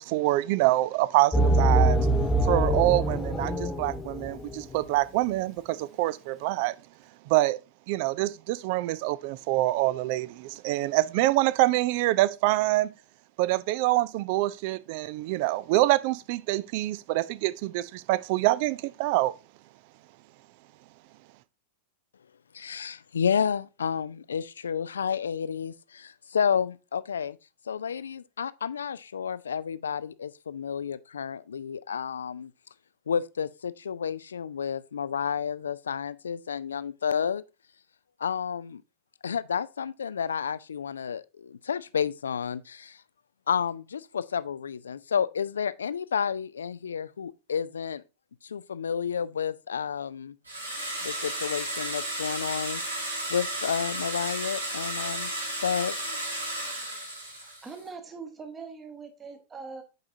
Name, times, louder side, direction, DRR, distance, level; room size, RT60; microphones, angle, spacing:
voice 1, 0.0-2.0 2.4-6.7 7.3-7.6 7.9-12.9 13.4-19.3, right 17 dB, 45° right, 0.4 m, -26 dB
sound 1, 1.3-4.7, right 1 dB, 10° left, 0.7 m, -24 dB
voice 2, 22.5-27.4 27.7-32.5 33.1-37.4 38.2-38.8 39.2-43.0 43.5-48.0 48.4-50.3 51.0-52.8 53.3-55.3 55.6-56.2, left 7 dB, 70° left, 0.3 m, -31 dB
sound 2, 50.5-57.8, right 1 dB, 80° right, 2.1 m, -33 dB
voice 3, 57.4-59.8, right 5 dB, 20° right, 1.2 m, -42 dB
7.7 x 4.8 x 2.6 m
figure-of-eight pair, 90°, 0 cm